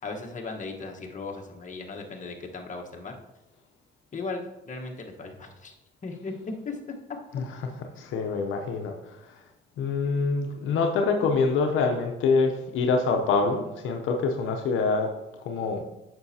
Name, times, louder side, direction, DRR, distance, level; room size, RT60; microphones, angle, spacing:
voice 1, 0.0-3.1 4.1-5.7 6.0-6.3 6.6-6.8, left 3 dB, 40° left, 1 dB, 1.2 m, -37 dB
voice 2, 8.0-8.9 9.8-15.1 15.4-15.8, left 4 dB, 85° left, 3 dB, 0.7 m, -25 dB
8.7 x 6.2 x 2.8 m, 0.99 s
cardioid pair, 90°, 20 cm